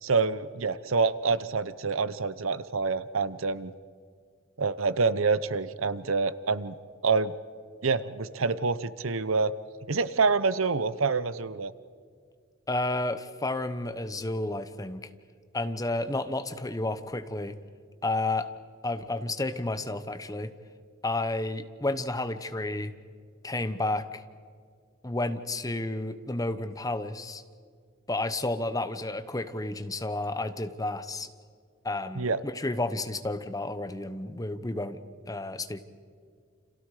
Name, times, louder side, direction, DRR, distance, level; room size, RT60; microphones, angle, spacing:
voice 1, 0.0-3.7 4.6-6.8 7.0-7.3 7.8-9.5 9.9-11.7 32.2-32.4, right 4 dB, 80° right, 14 dB, 0.9 m, -27 dB
voice 2, 12.7-15.1 15.5-17.6 18.0-18.5 18.8-20.5 21.0-22.9 23.4-24.2 25.0-27.4 28.1-31.3 31.8-35.0 35.3-35.8, left 2 dB, 15° left, 10 dB, 1.0 m, -31 dB
29.5 x 27.0 x 5.0 m, 2.1 s
head